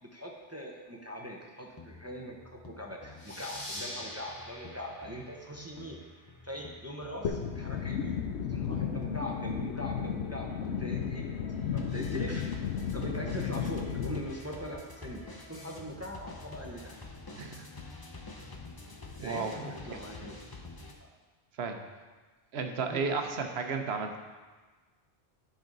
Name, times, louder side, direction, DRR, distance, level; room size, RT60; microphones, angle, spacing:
voice 1, 0.0-6.0 6.4-8.2 8.5-11.2 11.7-12.5 12.9-17.0 19.2-20.4 21.0-21.1 22.9-23.0, equal, 15° right, 0 dB, 0.7 m, -41 dB
sound 1, 1.8-20.9, left 3 dB, 25° left, 0.7 m, -48 dB
sound 2, 3.2-6.4, left 1 dB, 50° left, 1.5 m, -44 dB
sound 3, 7.2-14.2, left 7 dB, 80° left, 0.9 m, -33 dB
voice 2, 17.3-17.7 19.2-20.0 21.6-21.8 22.5-24.2, right 4 dB, 70° right, 5 dB, 1.1 m, -33 dB
10.5 x 5.7 x 3.9 m, 1.3 s
omnidirectional pair, 1.1 m